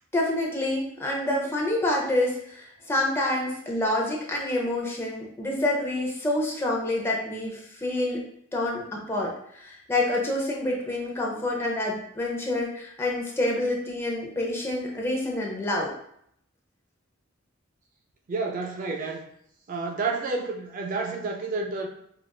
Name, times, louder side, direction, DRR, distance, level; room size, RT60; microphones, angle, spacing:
voice 1, 0.1-8.2 8.5-15.9, left 1 dB, 10° left, -2 dB, 0.6 m, -27 dB
voice 2, 18.3-19.2 19.7-21.9, right 3 dB, 40° right, 2 dB, 0.3 m, -30 dB
4.8 x 2.5 x 2.3 m, 0.69 s
head